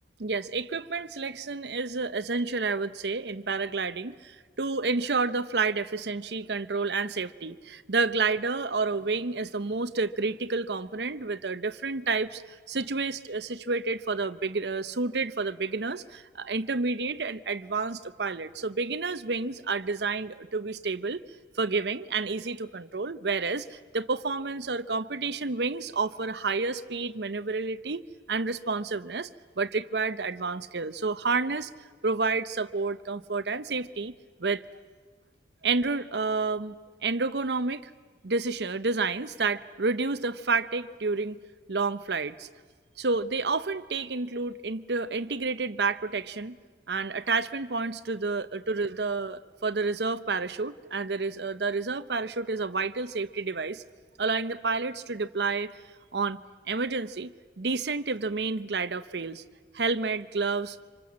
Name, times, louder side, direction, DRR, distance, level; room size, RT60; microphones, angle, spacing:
voice 1, 0.2-21.2 21.6-28.0 28.3-29.3 29.6-31.7 32.0-34.1 34.4-34.6 35.6-37.8 38.2-41.4 41.7-42.5 43.0-46.6 46.9-53.8 54.2-55.8 56.1-56.4 56.7-59.4 59.7-60.8, right 4 dB, 70° right, 11 dB, 0.8 m, -30 dB
26.0 x 25.5 x 7.5 m, 1.5 s
head